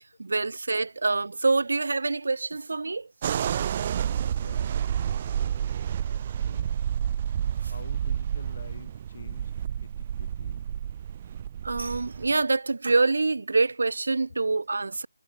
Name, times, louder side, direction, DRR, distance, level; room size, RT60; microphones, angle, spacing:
voice 1, 0.0-3.1 11.6-15.1, right 3 dB, 65° right, 0.3 m, -26 dB
sound 1, 3.2-12.3, right 9 dB, 25° right, 0.6 m, -30 dB
voice 2, 3.9-6.8 7.7-10.7 14.3-14.4, left 4 dB, 50° left, 6.6 m, -49 dB
figure-of-eight pair, 170°, 0 cm